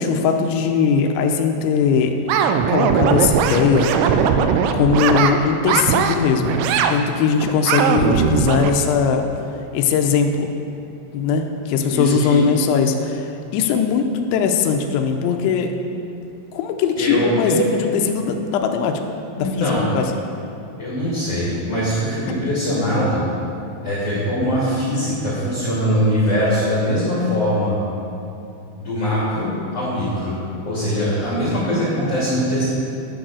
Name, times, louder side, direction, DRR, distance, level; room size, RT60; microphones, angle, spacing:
voice 1, 0.0-4.4 4.7-6.6 6.9-9.3 9.7-10.5 11.1-15.7 16.5-19.0 19.4-20.1, left 6 dB, 85° left, 4 dB, 2.9 m, -20 dB
sound 1, 2.3-5.3 5.6-6.1 6.4-7.0 7.4-8.7, right 7 dB, 85° right, 3.1 m, -19 dB
voice 2, 11.9-12.4 17.0-17.6 19.4-19.9 20.8-23.2 23.8-27.8 28.8-30.3 30.6-32.6, equal, 40° left, -10 dB, 2.9 m, -22 dB
11.5 x 6.4 x 6.5 m, 2.7 s
omnidirectional pair, 5.6 m